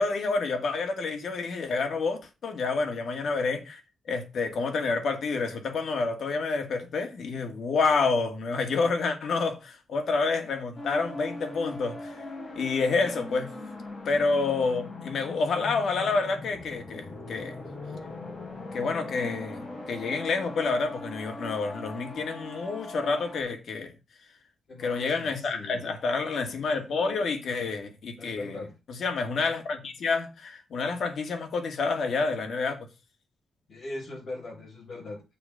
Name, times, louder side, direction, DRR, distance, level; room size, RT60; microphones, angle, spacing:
voice 1, 0.0-3.8 4.1-12.2 12.6-13.5 14.1-17.6 18.7-23.9 24.8-28.6 28.9-32.9, left 4 dB, 65° left, 2.2 m, -28 dB
sound 1, 10.7-23.4, left 2 dB, 30° left, 4.2 m, -40 dB
voice 2, 24.7-25.8 28.2-28.7 33.7-35.2, left 2 dB, 50° left, 4.1 m, -40 dB
6.8 x 5.0 x 7.0 m
wide cardioid pair, 140°, 0 cm